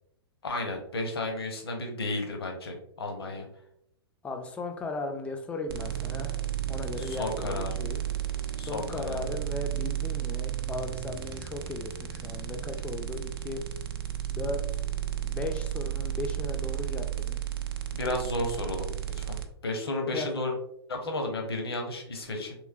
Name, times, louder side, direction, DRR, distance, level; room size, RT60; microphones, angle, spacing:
voice 1, 0.4-3.5 7.0-7.8 8.6-9.3 17.9-18.9 19.1-20.5 20.9-22.6, left 2 dB, 65° left, 3 dB, 0.8 m, -33 dB
voice 2, 4.2-6.4 6.7-8.0 8.7-13.6 14.3-14.8 15.2-17.4 20.1-20.3, left 3 dB, 10° left, 4 dB, 0.3 m, -37 dB
sound 1, 5.7-19.5, right 11 dB, 55° right, 0.4 m, -33 dB
3.1 x 3.1 x 2.3 m, 0.72 s
figure-of-eight pair, 110°, 14 cm